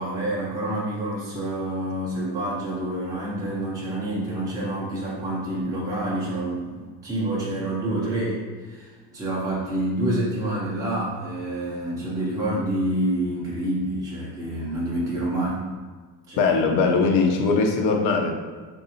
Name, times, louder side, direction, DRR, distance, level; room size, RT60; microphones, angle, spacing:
voice 1, 0.0-15.6 16.3-16.5, right 1 dB, 10° right, -7 dB, 0.7 m, -28 dB
voice 2, 16.4-18.3, left 4 dB, 80° left, 2 dB, 0.7 m, -20 dB
4.1 x 2.6 x 2.7 m, 1.4 s
cardioid pair, 140°, 44 cm